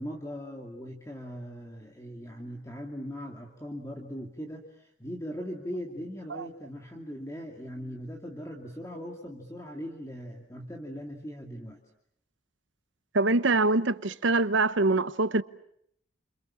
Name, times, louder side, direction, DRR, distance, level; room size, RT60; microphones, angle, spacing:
voice 1, 0.0-11.8, equal, 15° left, 2.7 m, -40 dB
voice 2, 13.1-15.4, right 2 dB, 80° right, 1.1 m, -24 dB
30.0 x 27.5 x 7.3 m
head